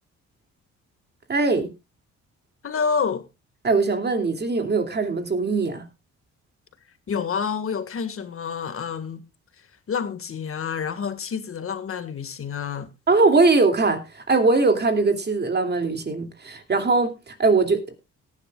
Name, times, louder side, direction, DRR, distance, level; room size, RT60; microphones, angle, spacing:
voice 1, 1.3-1.7 3.6-5.9 13.1-17.9, right 3 dB, 35° right, 2.6 m, -21 dB
voice 2, 2.6-3.3 7.1-9.2 9.9-12.9, left 6 dB, 45° left, 1.8 m, -28 dB
18.0 x 10.5 x 2.4 m
cardioid pair, 90°, 30 cm